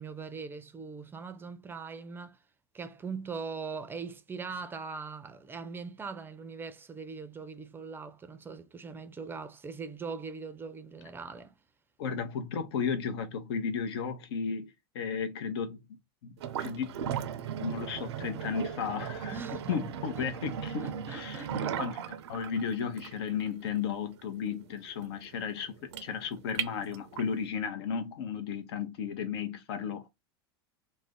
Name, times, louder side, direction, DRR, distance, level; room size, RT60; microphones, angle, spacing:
voice 1, 0.0-2.4 2.7-11.6 19.3-19.8 20.2-20.3 20.8-21.8, right 5 dB, 15° right, 0.4 m, -41 dB
voice 2, 12.0-15.8 16.2-16.3 16.6-17.1 17.6-19.4 19.7-21.5 21.8-30.1, left 6 dB, 75° left, 0.7 m, -34 dB
sound 1, 16.4-27.4, right 8 dB, 85° right, 0.4 m, -37 dB
2.4 x 2.1 x 3.5 m
hypercardioid pair, 110°, 14 cm